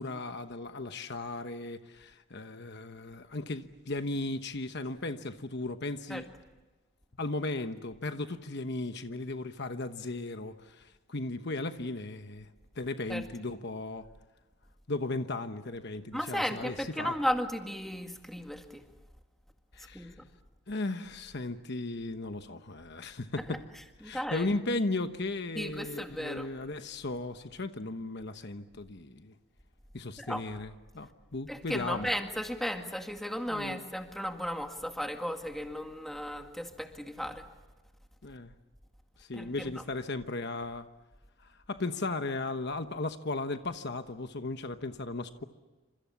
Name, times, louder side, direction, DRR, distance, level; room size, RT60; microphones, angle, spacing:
voice 1, 0.0-6.3 7.2-12.5 12.7-14.1 14.9-17.1 19.7-20.1 20.7-23.6 24.0-29.3 29.9-32.1 33.5-33.8 38.2-38.5 39.2-40.9 41.4-45.4, left 2 dB, 50° left, 8 dB, 1.1 m, -36 dB
voice 2, 16.1-18.8 19.9-20.2 23.5-23.6 24.0-24.5 25.6-26.5 30.2-30.4 31.5-37.5 39.3-39.8, equal, ahead, 4 dB, 1.9 m, -35 dB
29.0 x 27.0 x 7.1 m, 1.1 s
head